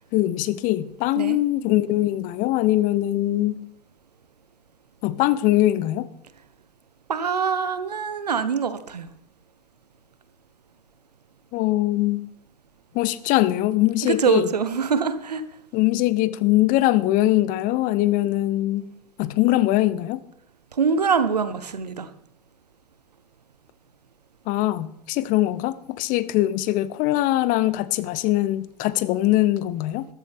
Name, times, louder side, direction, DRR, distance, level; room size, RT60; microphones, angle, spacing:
voice 1, 0.1-3.6 5.0-6.1 11.5-12.2 12.9-14.5 15.7-18.9 19.2-20.2 24.5-30.1, left 15 dB, 40° left, 0.8 m, -22 dB
voice 2, 7.1-9.1 14.0-15.4 20.7-22.1, right 6 dB, 85° right, 1.1 m, -24 dB
14.0 x 12.5 x 3.6 m
hypercardioid pair, 95°, 20 cm